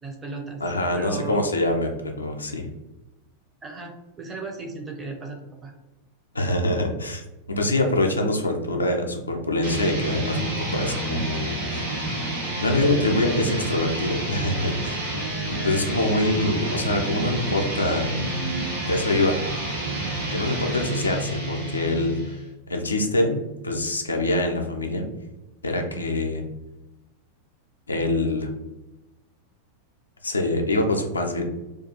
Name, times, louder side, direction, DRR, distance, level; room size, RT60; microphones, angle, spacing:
voice 1, 0.0-1.5 3.6-5.7 20.6-20.9, right 3 dB, 15° right, 2 dB, 0.5 m, -36 dB
voice 2, 0.6-1.9 2.2-2.7 6.3-11.8 12.6-15.0 15.6-18.3 18.9-19.5 20.3-22.4 22.7-25.0 25.6-26.4 27.9-28.5 30.2-31.4, left 1 dB, 80° left, 3 dB, 0.4 m, -25 dB
sound 1, 9.6-22.5, right 1 dB, 65° right, 1.1 m, -29 dB
2.3 x 2.2 x 2.8 m, 1.0 s
figure-of-eight pair, 90°, 0 cm